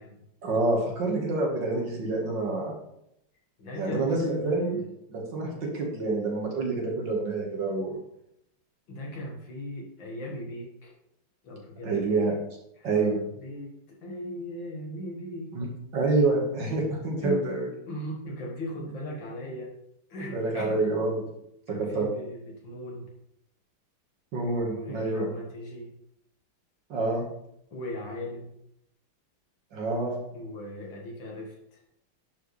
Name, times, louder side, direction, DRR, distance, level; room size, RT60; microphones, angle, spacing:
voice 1, 0.4-2.8 3.7-4.8 5.1-8.0 11.8-12.4 12.8-13.2 15.5-15.7 15.9-17.7 20.3-21.2 21.7-22.1 24.3-25.3 26.9-27.2 29.7-30.2, right 3 dB, 60° right, -1 dB, 2.2 m, -27 dB
voice 2, 3.6-4.8 8.9-10.9 11.4-12.1 12.8-15.5 17.2-17.4 17.9-19.7 20.1-20.8 21.7-23.1 24.6-25.9 27.7-28.5 30.3-31.8, left 1 dB, 65° left, -1 dB, 2.3 m, -38 dB
11.0 x 4.7 x 3.2 m, 0.77 s
omnidirectional pair, 2.3 m